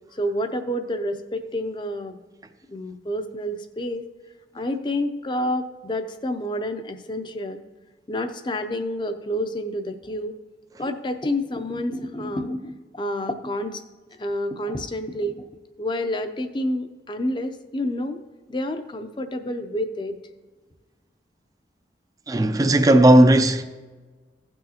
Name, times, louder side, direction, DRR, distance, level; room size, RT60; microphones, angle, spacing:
voice 1, 0.1-2.2 2.7-4.1 4.5-7.6 8.1-10.4 10.8-13.8 14.2-15.4 15.8-18.2 18.5-20.2, left 1 dB, 25° left, 0.5 m, -29 dB
voice 2, 22.3-23.6, right 1 dB, 20° right, 0.4 m, -15 dB
16.0 x 6.2 x 2.9 m
head